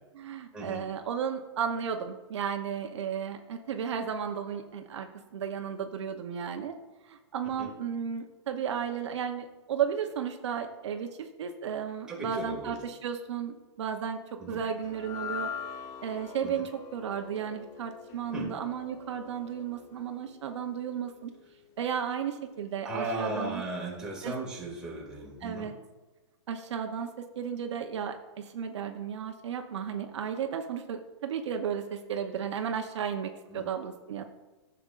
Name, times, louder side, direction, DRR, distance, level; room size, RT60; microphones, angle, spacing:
voice 1, 0.1-6.7 7.0-15.5 16.0-21.3 21.8-23.6 24.2-24.3 25.4-25.7 26.5-34.2, right 7 dB, 70° right, 5 dB, 0.8 m, -34 dB
voice 2, 12.1-12.7 14.4-14.6 16.4-16.5 18.3-18.5 22.8-25.7 33.5-33.6, right 2 dB, 5° right, -4 dB, 2.2 m, -36 dB
sound 1, 14.8-21.2, left 7 dB, 20° left, 0.5 m, -43 dB
11.0 x 6.8 x 2.5 m, 1.2 s
hypercardioid pair, 145°, 15 cm